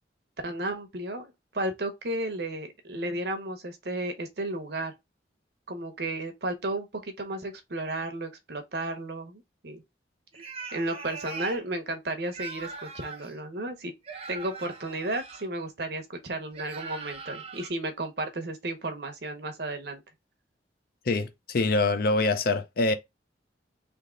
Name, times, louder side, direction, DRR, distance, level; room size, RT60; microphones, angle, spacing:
voice 1, 0.4-4.9 5.7-9.8 10.7-13.9 14.3-20.0, right 2 dB, 60° right, 0.8 m, -33 dB
sound 1, 10.3-11.6 12.3-13.3 14.0-15.5 16.5-17.7, right 4 dB, 35° right, 0.7 m, -41 dB
voice 2, 21.1-22.9, left 3 dB, 55° left, 0.5 m, -25 dB
3.5 x 2.7 x 3.7 m
head